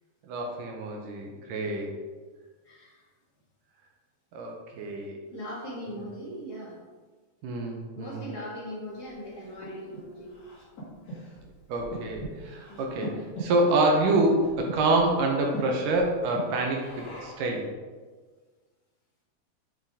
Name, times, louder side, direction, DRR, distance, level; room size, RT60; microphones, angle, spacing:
voice 1, 0.2-2.0 4.3-5.2 7.4-8.2 11.7-17.7, right 2 dB, 75° right, 0 dB, 2.1 m, -27 dB
voice 2, 2.6-3.1 5.3-6.8 7.9-10.4 12.7-12.9, equal, 40° left, -7 dB, 1.5 m, -40 dB
Breathing, 9.0-17.5, right 1 dB, 60° left, 1.0 m, -41 dB
9.0 x 3.7 x 3.6 m, 1.4 s
omnidirectional pair, 4.4 m